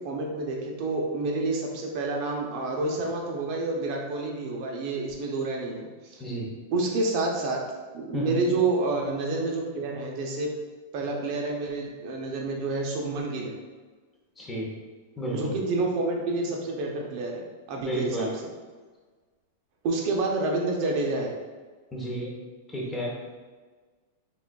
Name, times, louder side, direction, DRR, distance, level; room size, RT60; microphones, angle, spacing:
voice 1, 0.0-5.9 6.1-6.2 6.7-7.6 7.9-10.5 10.9-13.5 15.3-17.4 17.7-18.3 19.8-21.3, right 3 dB, 40° right, 0 dB, 0.5 m, -28 dB
voice 2, 14.4-14.7 15.2-15.6 17.8-18.3 21.9-22.3 22.7-23.1, right 1 dB, 10° left, -4 dB, 0.7 m, -32 dB
6.0 x 2.3 x 2.2 m, 1.4 s
supercardioid pair, 165°, 0 cm